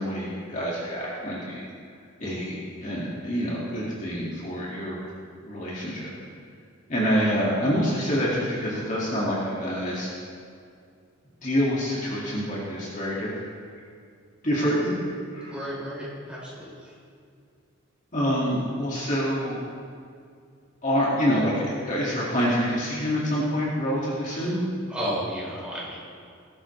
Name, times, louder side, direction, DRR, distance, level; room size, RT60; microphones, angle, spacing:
voice 1, 0.0-1.6 2.2-5.0 5.4-6.1 6.9-10.1 11.4-13.3 14.4-15.5 18.1-19.6 20.8-24.6, equal, 35° left, -6 dB, 2.2 m, -26 dB
voice 2, 15.5-16.9 24.2-24.6 24.9-26.0, equal, 5° right, -7 dB, 4.0 m, -33 dB
19.5 x 12.0 x 3.3 m, 2.3 s
head